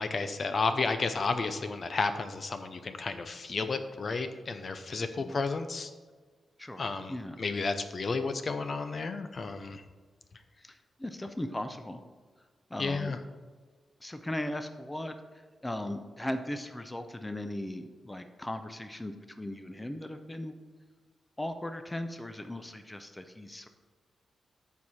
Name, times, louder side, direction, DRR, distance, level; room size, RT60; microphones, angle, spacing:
voice 1, 0.0-5.9 6.8-9.8 12.8-13.2, left 4 dB, 45° left, 9 dB, 0.7 m, -32 dB
voice 2, 5.0-5.3 6.6-7.4 10.6-12.0 12.7-13.1 14.0-15.1 15.6-20.5 21.4-23.7, left 1 dB, 15° left, 8 dB, 0.6 m, -38 dB
13.5 x 4.6 x 4.3 m, 1.5 s
cardioid pair, 105°, 0 cm